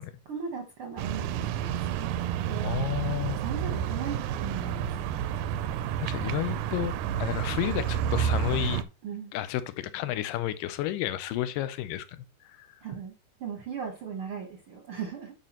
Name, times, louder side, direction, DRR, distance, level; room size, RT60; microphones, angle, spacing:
voice 1, 0.2-2.1 2.4-2.8 3.3-4.9 9.0-9.3 12.8-13.1 13.4-15.3, right 6 dB, 65° right, 1.4 m, -38 dB
sound 1, 1.0-8.8, right 9 dB, 80° right, 2.0 m, -30 dB
voice 2, 2.6-3.4 6.0-8.9 9.3-12.7, left 13 dB, 85° left, 2.3 m, -32 dB
11.0 x 5.1 x 2.9 m
omnidirectional pair, 3.9 m